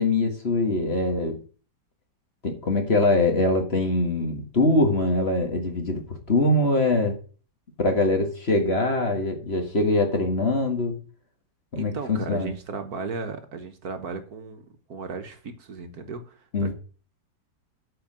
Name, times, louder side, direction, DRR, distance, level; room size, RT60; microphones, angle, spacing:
voice 1, 0.0-1.4 2.4-7.2 7.8-11.0 11.7-12.5 16.5-16.7, left 2 dB, 35° left, 4 dB, 1.9 m, -23 dB
voice 2, 11.7-16.7, right 4 dB, 60° right, 7 dB, 1.6 m, -35 dB
8.7 x 4.7 x 7.4 m, 0.38 s
omnidirectional pair, 1.9 m